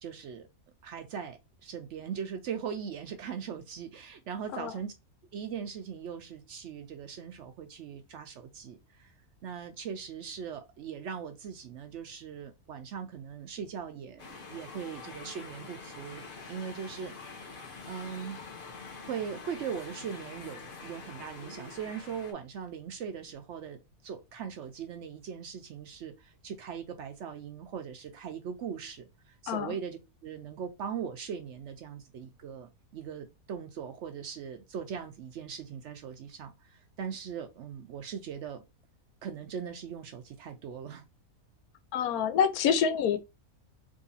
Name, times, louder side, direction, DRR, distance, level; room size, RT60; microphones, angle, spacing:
voice 1, 0.0-0.5 0.8-4.9 5.3-9.1 9.4-16.2 16.5-17.5 17.9-18.4 19.0-38.6 39.2-41.0, right 7 dB, 65° right, 0.7 m, -40 dB
sound 1, 14.2-22.3, left 4 dB, 45° left, 0.9 m, -45 dB
voice 2, 41.9-43.2, left 7 dB, 85° left, 1.1 m, -27 dB
3.6 x 3.1 x 2.7 m
omnidirectional pair, 1.5 m